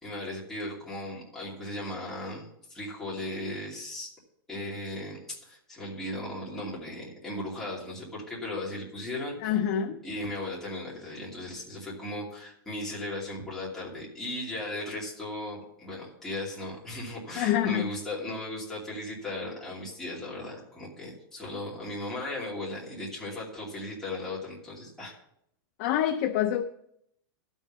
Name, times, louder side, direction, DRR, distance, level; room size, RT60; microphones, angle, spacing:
voice 1, 0.0-4.1 4.5-9.6 10.0-25.1, left 1 dB, 5° left, -7 dB, 2.7 m, -37 dB
voice 2, 9.4-10.0 17.4-17.9 25.8-26.6, left 10 dB, 30° left, 7 dB, 0.4 m, -26 dB
12.5 x 5.5 x 7.2 m, 0.74 s
supercardioid pair, 175°, 12 cm